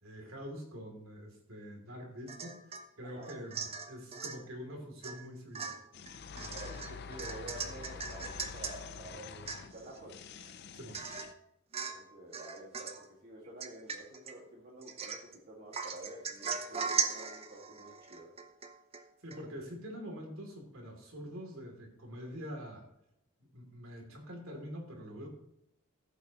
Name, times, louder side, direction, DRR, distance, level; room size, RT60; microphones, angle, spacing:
voice 1, 0.0-2.6 3.0-5.8 10.7-11.0 19.2-22.8 23.5-25.3, equal, 85° right, 1 dB, 2.8 m, -45 dB
Domestic sounds home sounds / Chink clink / Drip, 2.3-2.9 3.2-4.4 5.0-5.2 5.5-8.8 9.1-9.2 9.5-10.0 10.4-10.5 10.9-11.4 11.7-12.1 12.3-13.0 13.6-14.3 14.8-15.4 15.7-19.0 19.3-19.4, right 6 dB, 30° right, 0.7 m, -39 dB
voice 2, 3.0-3.3 6.5-10.2 11.9-18.3, right 1 dB, 50° right, -5 dB, 2.0 m, -49 dB
sound 1, 5.9-11.3, left 5 dB, 50° left, 0.5 m, -47 dB
14.5 x 8.4 x 3.0 m, 0.78 s
head